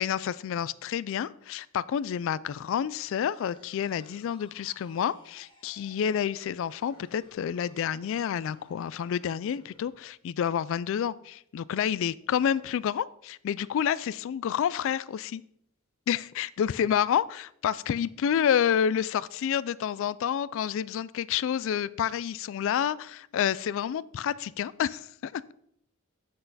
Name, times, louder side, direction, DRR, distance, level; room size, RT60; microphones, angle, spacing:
voice 1, 0.0-15.4 16.1-25.4, left 8 dB, 65° left, 19 dB, 0.3 m, -29 dB
sound 1, 2.5-9.9, left 1 dB, 25° left, 1.7 m, -59 dB
7.9 x 6.4 x 4.0 m, 0.70 s
head